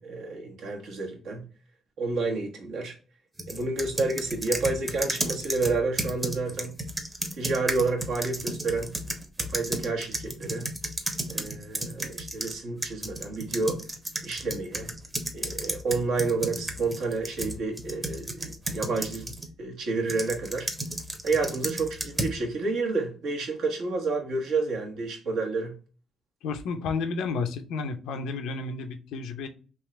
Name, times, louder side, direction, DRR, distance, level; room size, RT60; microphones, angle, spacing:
voice 1, 0.0-1.4 2.0-2.9 3.5-6.7 7.4-8.9 9.4-10.7 11.3-13.8 14.2-14.9 15.3-19.3 19.6-20.7 21.2-25.7, right 3 dB, 75° right, 1.3 m, -29 dB
sound 1, 3.4-12.5 12.8-19.5 20.1-22.4, right 1 dB, 20° right, 0.8 m, -33 dB
voice 2, 26.4-29.5, left 4 dB, 85° left, 0.6 m, -31 dB
3.6 x 2.9 x 3.2 m
cardioid pair, 90°, 0 cm